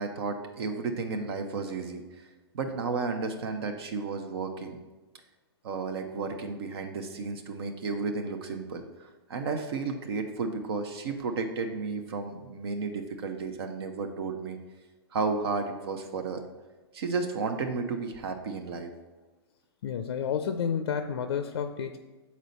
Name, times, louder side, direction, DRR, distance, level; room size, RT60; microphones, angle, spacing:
voice 1, 0.0-2.3 2.5-4.8 5.6-14.6 15.1-16.4 16.9-18.9, right 4 dB, 65° right, 5 dB, 0.7 m, -33 dB
voice 2, 19.8-22.0, left 7 dB, 70° left, 8 dB, 0.4 m, -30 dB
6.2 x 4.2 x 4.1 m, 1.2 s
hypercardioid pair, 120°, 14 cm